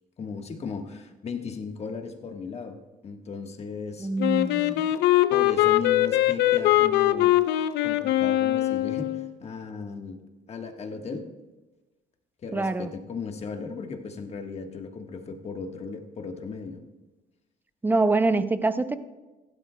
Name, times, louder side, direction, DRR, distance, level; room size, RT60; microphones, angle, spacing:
voice 1, 0.2-2.8 3.0-4.1 5.3-7.3 7.8-10.2 10.5-11.3 12.4-16.8, left 5 dB, 40° left, 4 dB, 1.4 m, -36 dB
voice 2, 4.0-4.9 12.5-12.9 17.8-19.0, right 3 dB, 10° right, 11 dB, 0.5 m, -25 dB
Wind instrument woodwind instrument, 4.2-9.3, left 15 dB, 80° left, 0.6 m, -22 dB
16.0 x 11.5 x 2.2 m, 1.2 s
cardioid pair, 110°, 17 cm